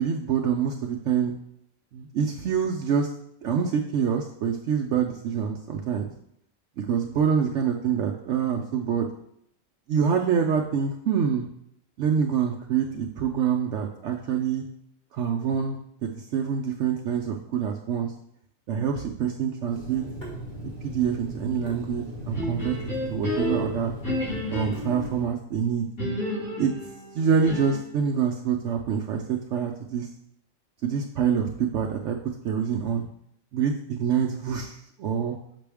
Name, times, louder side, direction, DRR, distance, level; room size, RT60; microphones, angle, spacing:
voice 1, 0.0-1.3 1.9-3.1 3.4-6.1 6.8-9.1 9.9-11.5 12.0-14.6 15.1-15.8 16.2-18.1 18.7-20.0 20.8-22.8 23.1-23.9 24.5-25.9 26.6-26.7 27.1-30.1 30.8-32.2 32.4-33.0 33.5-35.4, right 7 dB, 65° right, 2 dB, 0.8 m, -26 dB
Water tap faucet / Sink (filling or washing), 19.7-25.2, equal, 35° left, 2.5 m, -38 dB
sound 1, 22.3-25.1 26.0-28.0, left 1 dB, 75° left, 2.8 m, -31 dB
6.0 x 5.9 x 3.4 m, 0.72 s
omnidirectional pair, 1.4 m